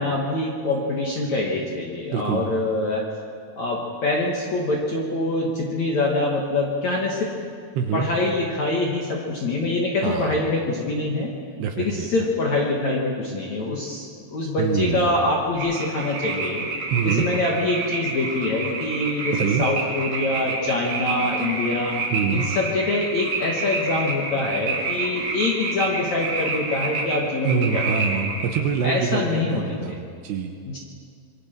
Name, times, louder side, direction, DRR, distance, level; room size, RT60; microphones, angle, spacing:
voice 1, 0.0-3.0 3.6-7.3 7.9-11.3 11.8-16.7 17.0-22.0 22.3-27.8 28.8-30.0 30.7-30.8, left 2 dB, 55° left, -2 dB, 2.1 m, -25 dB
voice 2, 2.1-2.5 7.8-8.1 10.0-10.3 11.6-12.1 14.6-15.1 16.9-17.3 19.3-19.7 22.1-22.5 27.4-30.5, right 7 dB, 75° right, 4 dB, 2.8 m, -25 dB
sound 1, 15.5-28.6, right 3 dB, 50° right, 3.4 m, -29 dB
25.5 x 22.5 x 4.6 m, 2.1 s
omnidirectional pair, 5.6 m